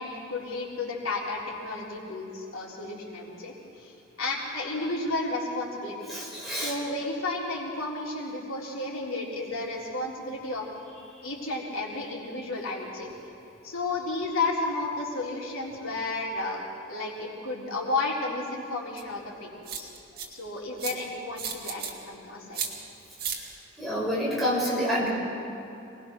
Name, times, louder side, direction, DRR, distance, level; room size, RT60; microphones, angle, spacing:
voice 1, 0.0-6.1 6.5-10.6 11.2-13.1 13.6-19.9 20.3-22.6, left 2 dB, 90° left, -3 dB, 3.8 m, -32 dB
voice 2, 6.1-6.7 23.4-23.5 23.8-25.1, equal, ahead, -6 dB, 5.3 m, -28 dB
sound 1, 19.0-19.1 19.7-20.3 20.8-21.0 21.4-21.9 22.5-22.7 23.2-23.4, right 7 dB, 45° right, 2.2 m, -33 dB
26.5 x 19.5 x 6.0 m, 2.8 s
head